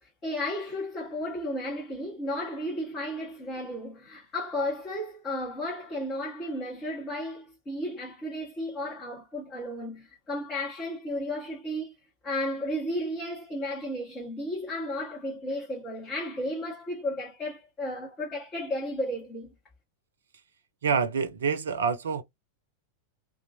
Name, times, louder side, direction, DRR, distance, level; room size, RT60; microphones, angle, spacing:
voice 1, 0.0-12.0 12.2-19.5, left 1 dB, 25° left, 1.5 m, -33 dB
voice 2, 20.8-22.2, right 5 dB, 65° right, 0.6 m, -27 dB
2.9 x 2.6 x 2.6 m
figure-of-eight pair, 90°, 0 cm